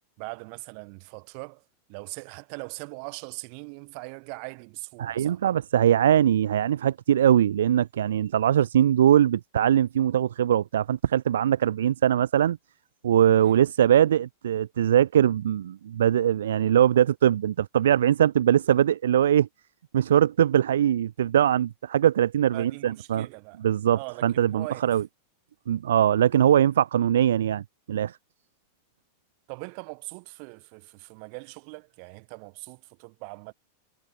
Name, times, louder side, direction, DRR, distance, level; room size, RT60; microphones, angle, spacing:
voice 1, 0.2-5.4 13.4-13.6 22.5-23.6 23.9-25.0 29.5-33.5, right 40 dB or more, 45° right, 1.5 m, -41 dB
voice 2, 5.0-12.6 13.0-19.5 19.9-23.3 23.6-25.0 25.7-27.6 27.9-28.2, right 10 dB, 65° right, 0.4 m, -21 dB
figure-of-eight pair, 90°, 0 cm